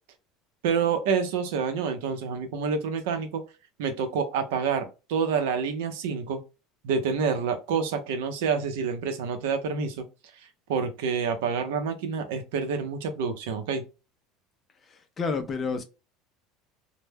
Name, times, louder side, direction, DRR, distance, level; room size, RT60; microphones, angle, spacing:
voice 1, 0.6-3.4 3.8-6.4 6.8-10.1 10.7-13.8, right 6 dB, 85° right, 0.6 m, -28 dB
voice 2, 14.9-15.8, left 4 dB, 25° left, 0.4 m, -30 dB
2.1 x 2.1 x 3.2 m
cardioid pair, 155°, 0 cm